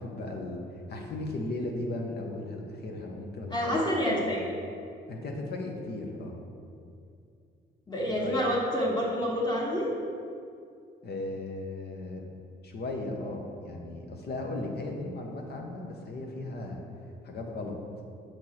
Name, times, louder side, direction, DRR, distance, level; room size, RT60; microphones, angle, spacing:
voice 1, 0.0-4.2 5.1-6.4 8.2-8.4 11.0-12.3 12.6-16.8 17.2-17.7, left 2 dB, 55° left, 1 dB, 1.0 m, -36 dB
voice 2, 3.5-4.5 7.9-9.9, equal, 20° left, -4 dB, 1.6 m, -28 dB
6.5 x 4.5 x 4.3 m, 2.4 s
cardioid pair, 90°, 20 cm